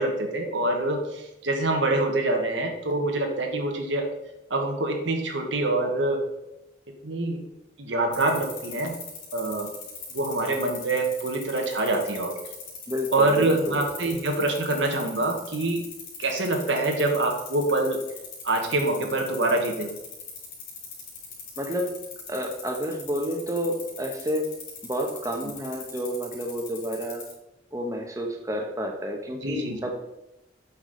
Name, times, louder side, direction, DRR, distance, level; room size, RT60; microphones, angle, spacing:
voice 1, 0.0-4.1 4.5-6.2 7.0-7.5 7.8-9.0 9.3-9.7 10.1-12.4 13.1-15.8 16.2-18.0 18.4-20.0 25.4-25.5 29.4-29.9, right 2 dB, 75° right, 3 dB, 1.2 m, -25 dB
sound 1, 8.1-27.3, left 7 dB, 80° left, 3.2 m, -40 dB
voice 2, 12.9-13.8 21.6-21.9 22.3-24.5 24.8-27.2 27.7-29.9, equal, 15° right, 3 dB, 1.0 m, -30 dB
8.1 x 6.0 x 3.9 m, 0.92 s
head